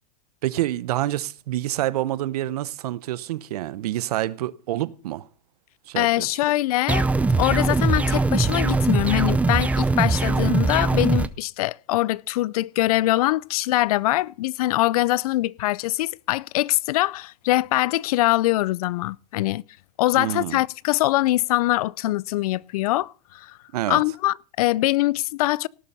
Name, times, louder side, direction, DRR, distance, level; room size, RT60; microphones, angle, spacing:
voice 1, 0.4-5.3 5.9-6.4 20.1-20.6 23.7-24.0, right 14 dB, 75° right, 0.8 m, -27 dB
voice 2, 6.0-7.1 7.4-19.6 20.0-23.6 23.9-25.7, left 17 dB, 65° left, 0.5 m, -23 dB
sound 1, 6.9-11.3, right 3 dB, 5° right, 0.5 m, -21 dB
17.5 x 6.9 x 5.4 m
supercardioid pair, 140°, 20 cm